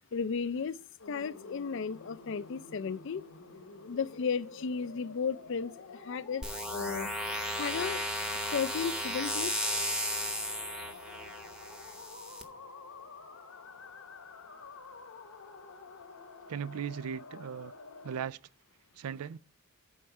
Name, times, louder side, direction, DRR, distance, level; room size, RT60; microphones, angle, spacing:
voice 1, 0.1-0.8 1.1-3.2 3.9-7.1 7.6-8.0 8.4-9.5, left 6 dB, 60° left, 0.4 m, -34 dB
sound 1, 1.0-18.2, left 4 dB, 80° left, 1.2 m, -49 dB
sound 2, 6.4-12.4, equal, 5° right, 0.9 m, -35 dB
voice 2, 16.5-17.7 18.0-18.4 19.0-19.4, right 8 dB, 85° right, 0.4 m, -37 dB
11.0 x 4.7 x 5.3 m
head